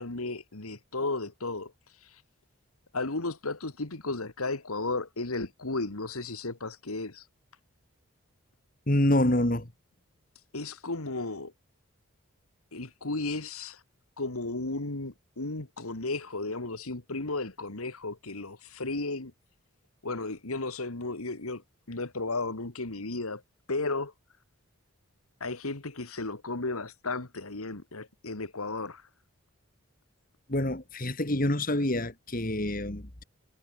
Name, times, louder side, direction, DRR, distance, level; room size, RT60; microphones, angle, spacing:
voice 1, 0.0-1.7 2.0-2.2 2.9-7.3 10.5-11.5 12.7-13.8 14.2-19.3 20.0-21.6 21.9-23.4 23.7-24.1 25.4-29.0, left 3 dB, 80° left, 2.1 m, -34 dB
voice 2, 8.9-9.7 30.5-33.2, left 1 dB, 40° left, 2.4 m, -27 dB
head